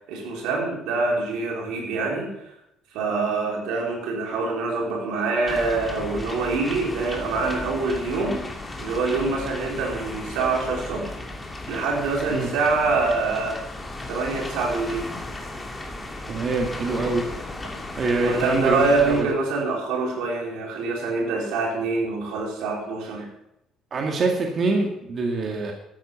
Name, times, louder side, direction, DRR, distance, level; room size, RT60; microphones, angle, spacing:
voice 1, 0.1-2.5 2.9-8.4 8.8-11.1 11.7-13.6 14.1-15.0 18.2-23.3, right 3 dB, 85° right, -1 dB, 4.4 m, -25 dB
sound 1, 5.5-19.2, left 2 dB, 15° left, 2.5 m, -35 dB
voice 2, 16.3-17.3 18.0-19.3 23.9-25.7, right 3 dB, 45° right, 1 dB, 2.1 m, -24 dB
13.5 x 9.8 x 5.5 m, 0.84 s
cardioid pair, 100°, 0 cm